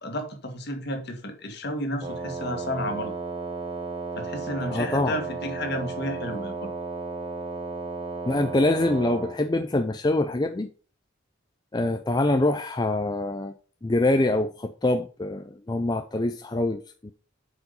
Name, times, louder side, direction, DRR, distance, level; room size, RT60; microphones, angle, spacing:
voice 1, 0.0-3.1 4.2-6.7, equal, 55° left, 1.7 m, -32 dB
Wind instrument woodwind instrument, 2.0-9.4, right 4 dB, 25° right, 1.1 m, -34 dB
voice 2, 4.7-5.1 8.3-10.7 11.7-13.5 13.8-17.1, left 2 dB, 20° left, 0.4 m, -25 dB
7.8 x 5.0 x 5.2 m
head